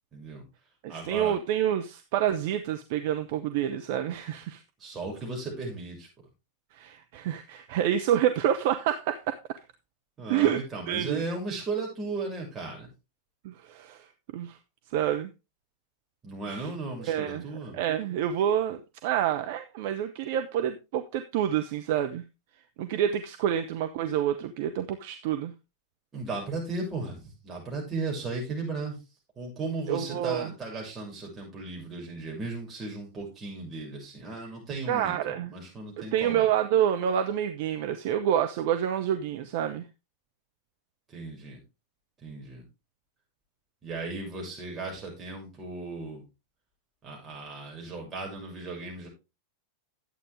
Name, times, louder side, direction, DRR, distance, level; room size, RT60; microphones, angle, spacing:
voice 1, 0.1-0.4 0.9-1.3 4.8-6.1 10.2-12.9 16.2-17.8 26.1-29.0 29.4-36.5 41.1-41.6 42.2-42.7 43.8-46.2 47.0-49.1, right 3 dB, 20° right, -1 dB, 6.9 m, -36 dB
voice 2, 0.8-4.6 6.7-9.4 10.3-10.6 10.9-11.2 13.4-14.6 14.9-15.3 16.5-16.7 17.1-17.5 17.7-22.2 22.8-25.5 29.9-30.5 34.9-35.5 36.0-39.8, right 10 dB, 50° right, 7 dB, 0.8 m, -28 dB
11.5 x 8.5 x 3.5 m, 0.27 s
figure-of-eight pair, 90°, 0 cm